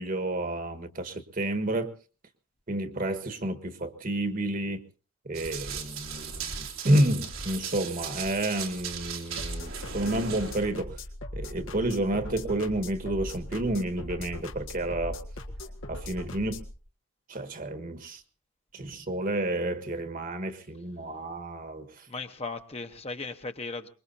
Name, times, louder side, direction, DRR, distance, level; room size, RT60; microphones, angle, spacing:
voice 1, 0.0-1.9 2.7-4.8 5.2-11.0 11.3-15.2 15.9-16.6 17.3-18.2 18.7-22.1, right 1 dB, 45° right, 8 dB, 1.5 m, -30 dB
Run, 5.3-10.6, right 6 dB, 90° right, 3.1 m, -37 dB
sound 1, 9.4-16.7, left 1 dB, 85° left, 1.8 m, -39 dB
voice 2, 22.1-23.9, left 3 dB, 30° left, 7 dB, 1.0 m, -37 dB
24.0 x 21.5 x 2.8 m, 0.35 s
head